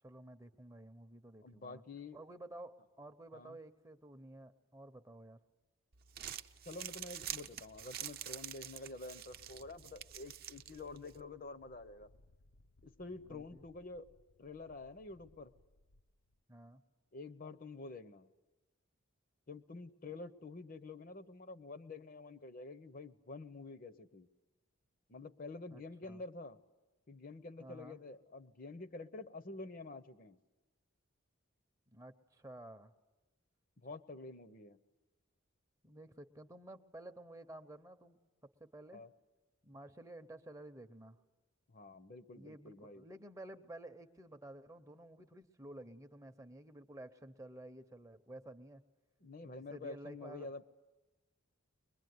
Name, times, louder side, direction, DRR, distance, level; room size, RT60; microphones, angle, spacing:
voice 1, 0.0-1.8 2.1-5.4 13.3-13.7 16.5-16.8 25.7-26.2 27.6-28.0 31.9-32.9 35.8-38.2 38.4-39.0 39.6-41.2 42.3-48.8 49.4-50.5, right 1 dB, 15° right, 8 dB, 0.7 m, -52 dB
voice 2, 1.4-2.2 3.3-3.6 6.6-12.1 12.8-14.1 14.4-15.5 17.1-18.3 19.5-24.3 25.1-26.6 27.1-30.4 33.8-34.8 38.9-39.1 41.7-43.1 49.2-50.6, left 3 dB, 40° left, 12 dB, 0.7 m, -48 dB
Crumpling crinkling, 5.9-11.2, right 10 dB, 45° right, 0.8 m, -47 dB
Wind, 9.3-16.4, left 2 dB, 75° left, 0.7 m, -67 dB
22.5 x 22.0 x 9.5 m, 1.1 s
head